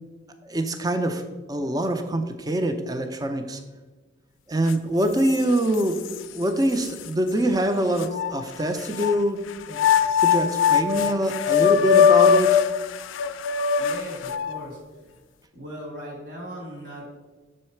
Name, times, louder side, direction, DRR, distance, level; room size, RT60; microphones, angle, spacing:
voice 1, 0.4-3.6 4.5-6.0 6.3-9.9 10.2-12.6, right 1 dB, 20° right, 7 dB, 0.4 m, -24 dB
sound 1, 4.7-4.8 5.3-6.2 6.8-6.9 8.0-9.1 9.7-14.6, left 7 dB, 90° left, 0.4 m, -21 dB
voice 2, 13.8-15.1 15.5-17.1, equal, 60° right, -2 dB, 1.8 m, -38 dB
6.4 x 3.9 x 4.4 m, 1.3 s
head